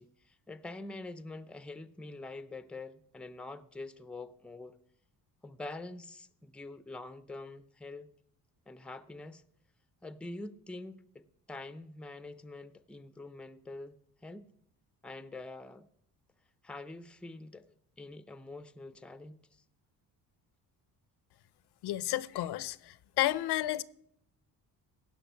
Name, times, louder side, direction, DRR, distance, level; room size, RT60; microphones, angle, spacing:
voice 1, 0.0-4.8 5.4-8.1 8.7-9.4 10.0-14.0 14.2-14.5 15.0-15.9 16.6-19.5, left 2 dB, 5° left, 0.5 m, -45 dB
voice 2, 21.8-22.8 23.2-23.8, left 14 dB, 75° left, 0.7 m, -31 dB
16.5 x 6.0 x 8.2 m
cardioid pair, 100°, 40 cm